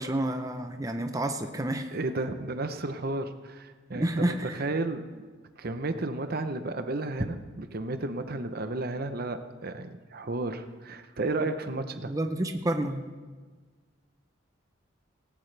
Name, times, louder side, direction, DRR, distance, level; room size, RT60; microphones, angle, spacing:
voice 1, 0.0-1.9 3.9-4.6 11.4-11.5 12.1-13.0, right 1 dB, 20° right, 6 dB, 0.7 m, -29 dB
voice 2, 1.9-5.3 5.6-12.1, right 2 dB, 50° right, 9 dB, 0.8 m, -33 dB
18.0 x 18.0 x 3.4 m, 1.4 s
head